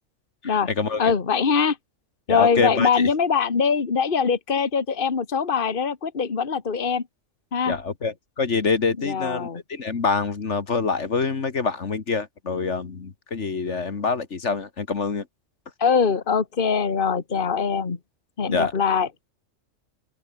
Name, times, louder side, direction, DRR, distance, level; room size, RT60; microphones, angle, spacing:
voice 1, 0.4-1.1 2.3-3.1 7.7-15.3 18.5-18.7, left 4 dB, 65° left, 2.0 m, -26 dB
voice 2, 1.0-1.8 2.3-7.0 7.5-7.7 9.0-9.6 15.8-18.0 18.4-19.1, left 6 dB, 45° left, 1.7 m, -22 dB
open air
omnidirectional pair, 1.3 m